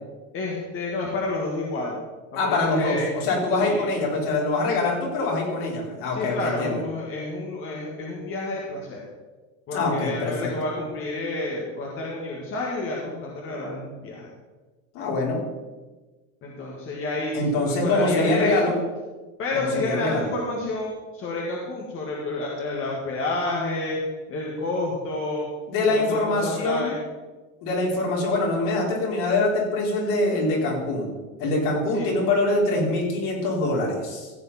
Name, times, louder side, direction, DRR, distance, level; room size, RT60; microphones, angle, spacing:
voice 1, 0.3-2.0 2.4-3.1 3.6-3.9 6.1-9.0 9.7-14.3 16.4-18.7 19.4-24.0 24.3-25.5 25.9-27.0 31.9-32.1, left 2 dB, 30° left, -2 dB, 1.9 m, -29 dB
voice 2, 2.4-6.8 9.7-10.5 14.9-15.4 17.3-18.7 19.5-20.3 25.7-26.9 27.6-31.1 31.4-34.3, left 2 dB, 55° left, -3 dB, 4.3 m, -24 dB
15.0 x 8.3 x 4.3 m, 1.3 s
supercardioid pair, 150°, 40 cm